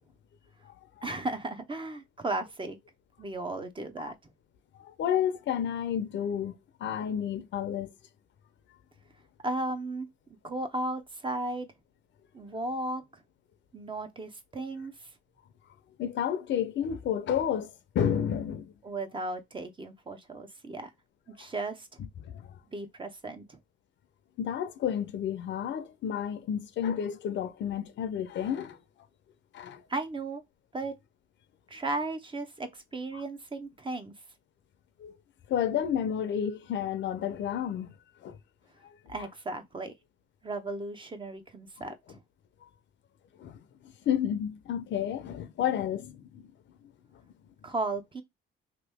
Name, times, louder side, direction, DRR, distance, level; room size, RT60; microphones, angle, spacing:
voice 1, 1.0-2.8 3.2-4.2 9.4-10.1 10.4-11.7 12.3-13.2 13.7-15.1 18.8-20.9 21.4-21.9 22.7-23.6 29.9-30.4 30.7-30.9 31.7-34.1 39.1-39.9 40.4-42.2 47.6-48.2, right 2 dB, 25° right, 0.8 m, -35 dB
voice 2, 4.8-7.9 16.0-18.7 22.2-22.6 24.4-28.8 29.5-29.8 35.0-35.1 35.5-37.9 38.2-38.4 38.8-38.9 43.4-43.6 44.1-46.5, left 9 dB, 65° left, 0.6 m, -31 dB
3.0 x 2.7 x 3.4 m
cardioid pair, 90°, 20 cm